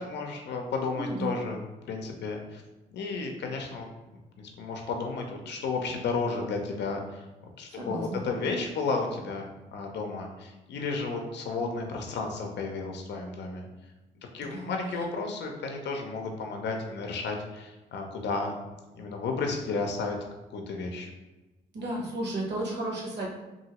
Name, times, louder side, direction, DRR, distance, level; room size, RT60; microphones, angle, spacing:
voice 1, 0.0-1.6 1.9-2.6 2.9-3.9 4.6-7.2 7.6-9.4 9.7-13.7 14.3-18.5 18.9-20.2 20.5-21.1, left 4 dB, 65° left, 2 dB, 0.5 m, -32 dB
voice 2, 0.9-1.3 7.7-8.2 14.4-15.0 21.7-23.3, right 1 dB, 65° right, -3 dB, 1.0 m, -34 dB
2.8 x 2.6 x 2.9 m, 1.1 s
supercardioid pair, 50°, 19 cm